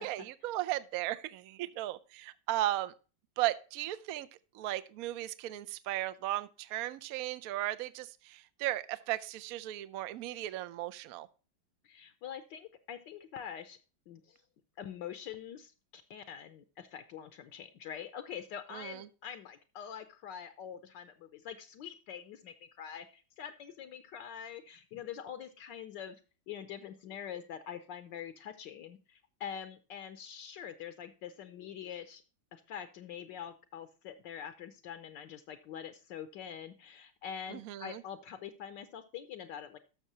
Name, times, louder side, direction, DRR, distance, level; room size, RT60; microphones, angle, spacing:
voice 1, 0.0-2.9 3.4-4.3 4.5-11.3 18.7-19.0 37.5-38.0, right 15 dB, 75° right, 0.8 m, -36 dB
voice 2, 11.8-13.8 14.1-14.4 14.8-26.2 26.5-32.2 32.5-39.8, left 8 dB, 70° left, 1.3 m, -45 dB
12.0 x 6.7 x 2.8 m
omnidirectional pair, 2.1 m